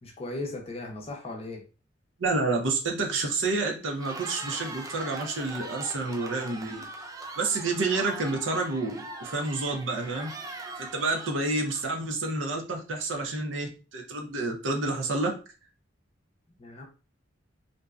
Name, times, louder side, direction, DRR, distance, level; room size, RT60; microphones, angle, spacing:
voice 1, 0.0-1.6 16.6-16.8, left 2 dB, 30° left, 1 dB, 0.6 m, -37 dB
voice 2, 2.2-6.9 7.4-10.3 10.8-15.4, right 3 dB, 75° right, 2 dB, 0.6 m, -29 dB
Cheering, 3.9-12.1, right 2 dB, 20° right, 0.3 m, -41 dB
2.6 x 2.1 x 2.3 m, 0.34 s
head